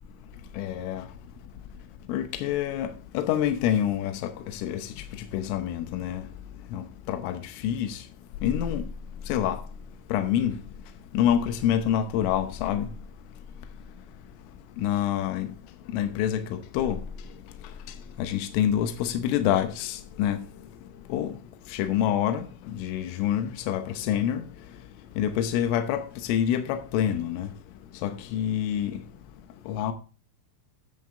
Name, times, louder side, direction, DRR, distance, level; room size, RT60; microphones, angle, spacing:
voice 1, 0.6-1.0 2.1-2.9 3.2-4.2 4.5-4.9 5.3-6.2 6.7-8.0 8.4-8.8 9.3-9.6 10.1-10.6 11.2-12.9 14.8-15.5 15.9-16.4 16.8-17.0 18.2-20.4 21.1-21.3 21.7-22.5 22.8-24.4 25.2-27.5 28.0-29.0 29.7-29.9, left 10 dB, 85° left, 3.5 m, -26 dB
11.0 x 7.7 x 3.7 m
omnidirectional pair, 5.7 m